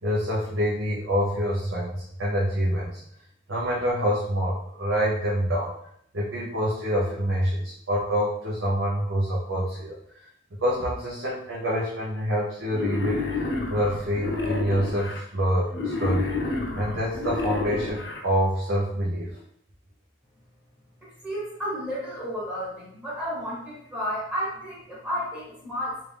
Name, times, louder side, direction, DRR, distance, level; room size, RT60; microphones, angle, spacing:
voice 1, 0.0-3.0 3.5-5.7 6.1-10.0 10.6-16.4 16.7-19.4, equal, 80° right, -6 dB, 0.8 m, -26 dB
Wild animals, 12.7-15.2 15.7-18.2, left 3 dB, 65° left, 0.5 m, -30 dB
voice 2, 21.0-26.1, equal, 5° right, -7 dB, 1.1 m, -32 dB
3.2 x 2.5 x 3.4 m, 0.71 s
head